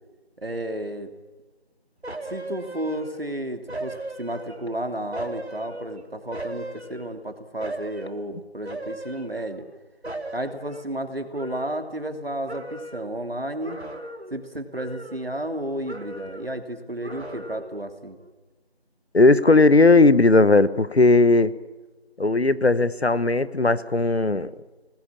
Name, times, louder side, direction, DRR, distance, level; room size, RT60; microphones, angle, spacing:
voice 1, 0.4-1.1 2.2-9.7 10.3-13.8 14.3-18.2, right 1 dB, 65° right, 7 dB, 2.9 m, -32 dB
sound 1, 2.0-3.3 3.7-4.8 5.1-7.2 7.6-8.2 8.6-9.8 10.0-12.2 12.5-13.2 13.6-14.4 14.7-15.6 15.9-16.6 17.0-17.8 18.2-18.3, right 1 dB, 85° right, 3.0 m, -37 dB
voice 2, 19.1-21.5 22.2-24.5, left 3 dB, 80° left, 16 dB, 1.3 m, -17 dB
26.0 x 19.5 x 8.7 m, 1.2 s
figure-of-eight pair, 180°, 31 cm